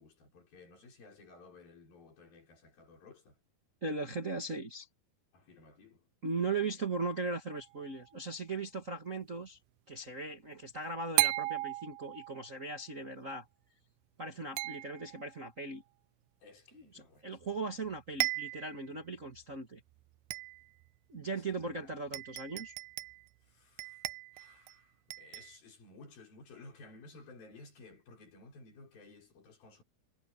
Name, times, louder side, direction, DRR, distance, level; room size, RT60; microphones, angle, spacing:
voice 1, 0.0-3.4 5.3-6.1 16.4-17.4 21.3-21.9 23.4-24.1 24.3-29.8, left 3 dB, 70° left, 6.9 m, -56 dB
voice 2, 3.8-4.9 6.2-9.6 9.9-13.5 14.2-15.8 16.7-19.8 21.1-22.7, right 3 dB, 30° right, 1.7 m, -38 dB
sound 1, 7.5-8.1 11.2-12.5 14.6-15.4 17.4-17.5 17.9-18.0 18.2-18.8 19.4-19.5 20.3-20.8 21.7-21.8 22.1-23.3 23.8-24.7 25.1-25.6, right 20 dB, 90° right, 2.5 m, -36 dB
omnidirectional pair, 4.3 m